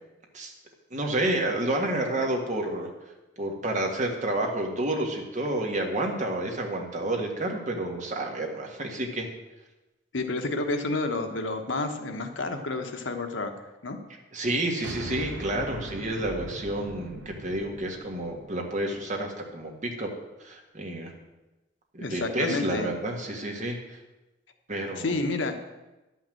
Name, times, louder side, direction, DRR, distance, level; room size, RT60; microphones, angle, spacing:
voice 1, 0.9-2.9 3.4-9.3 14.3-20.1 20.4-21.1 21.9-23.8 24.7-25.1, right 1 dB, 40° right, 1 dB, 1.8 m, -30 dB
voice 2, 10.1-13.5 13.8-14.0 22.0-22.9 25.0-25.5, left 2 dB, 75° left, 5 dB, 1.2 m, -30 dB
sound 1, 14.8-19.3, right 1 dB, 75° right, 1.2 m, -41 dB
11.5 x 5.8 x 7.7 m, 1.1 s
head